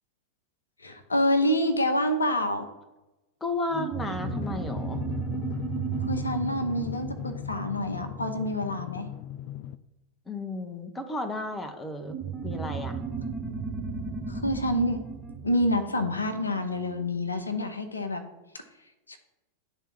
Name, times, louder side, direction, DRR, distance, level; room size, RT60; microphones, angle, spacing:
voice 1, 0.8-2.7 6.0-9.1 14.3-15.0 15.4-18.2 19.1-19.2, left 1 dB, 80° left, 8 dB, 0.8 m, -27 dB
voice 2, 3.4-5.0 10.3-12.2 12.4-13.0, left 2 dB, 10° left, 7 dB, 0.9 m, -33 dB
sound 1, 3.7-8.7 12.0-17.0, right 5 dB, 10° right, 1.2 m, -35 dB
Drum, 4.2-9.8, left 11 dB, 45° left, 0.4 m, -37 dB
11.0 x 3.7 x 4.4 m, 1.0 s
figure-of-eight pair, 90°, 0 cm